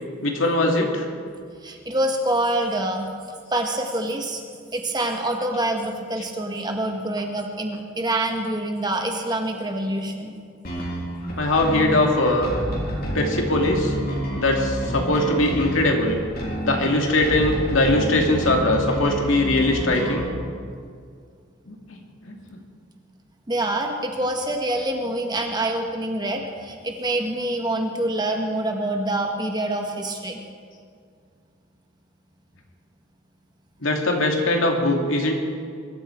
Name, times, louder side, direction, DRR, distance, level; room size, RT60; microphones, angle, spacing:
voice 1, 0.2-1.1 11.4-12.5 13.1-13.9 14.3-16.2 16.6-20.3 21.7-21.8 22.3-22.6 33.8-35.3, left 2 dB, 85° left, 2 dB, 2.4 m, -21 dB
voice 2, 1.6-3.1 3.5-4.4 4.7-10.4 23.5-30.4, right 1 dB, 20° right, 3 dB, 1.6 m, -26 dB
sound 1, 10.6-20.3, equal, 50° left, 3.5 m, -29 dB
22.5 x 13.0 x 4.6 m, 2.1 s
head